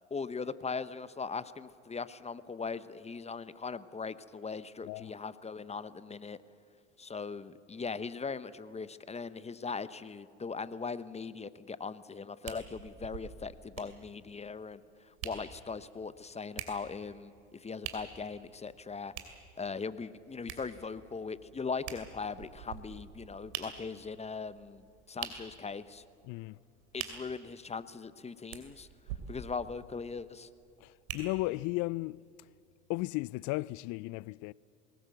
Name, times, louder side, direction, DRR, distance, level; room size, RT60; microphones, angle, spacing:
voice 1, 0.1-6.4 7.0-19.1 19.6-26.0 26.9-28.9 29.3-30.5, left 5 dB, 20° left, 0.9 m, -40 dB
sound 1, 12.5-31.7 32.3-32.4, right 9 dB, 75° right, 2.7 m, -47 dB
voice 2, 26.2-26.6 30.8-32.2 32.9-34.5, left 21 dB, 55° left, 0.5 m, -35 dB
21.5 x 19.0 x 8.0 m
hypercardioid pair, 75°, 35 cm